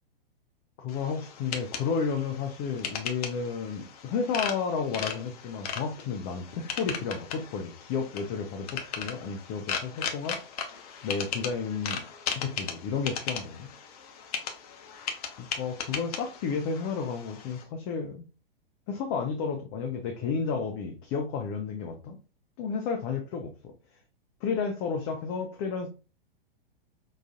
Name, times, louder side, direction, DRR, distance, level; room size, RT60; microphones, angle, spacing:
voice 1, 0.8-10.7 11.0-12.0 12.3-13.7 15.4-18.2 18.9-22.2 22.6-23.7 24.4-25.9, left 5 dB, 20° left, 0.4 m, -32 dB
sound 1, 0.9-17.6, left 7 dB, 40° left, 0.8 m, -37 dB
5.6 x 2.4 x 2.5 m
figure-of-eight pair, 110°, 29 cm